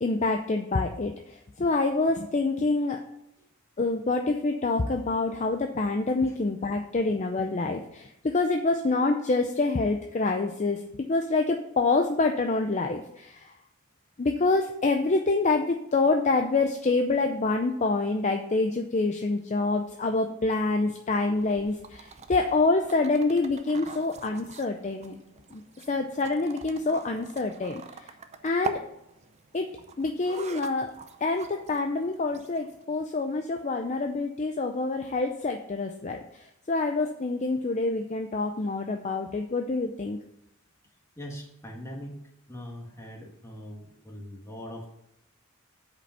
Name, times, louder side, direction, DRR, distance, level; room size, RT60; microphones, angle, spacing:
voice 1, 0.0-3.0 3.8-10.8 11.1-13.5 14.2-25.2 25.5-25.6 25.9-27.8 28.4-28.8 29.5-29.7 30.0-30.9 31.2-36.2 36.7-40.2, left 3 dB, 30° left, 5 dB, 0.5 m, -26 dB
sound 1, 21.2-32.8, right 4 dB, 30° right, 0.6 m, -44 dB
voice 2, 41.2-42.2 42.5-44.9, equal, 10° left, -1 dB, 1.6 m, -41 dB
8.5 x 5.2 x 5.6 m, 0.83 s
head